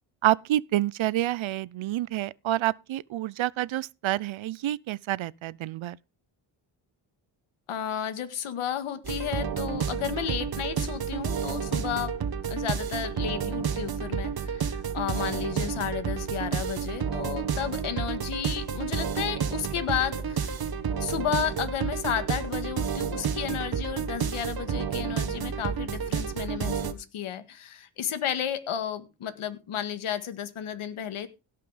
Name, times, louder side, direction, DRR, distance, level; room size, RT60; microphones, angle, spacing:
voice 1, 0.2-6.0, right 14 dB, 65° right, 0.7 m, -28 dB
voice 2, 7.7-12.2 12.5-20.5 21.0-31.3, left 9 dB, 80° left, 1.9 m, -33 dB
sound 1, 9.0-26.9, right 6 dB, 45° right, 1.5 m, -30 dB
17.0 x 5.8 x 5.1 m
cardioid pair, 80°, 50 cm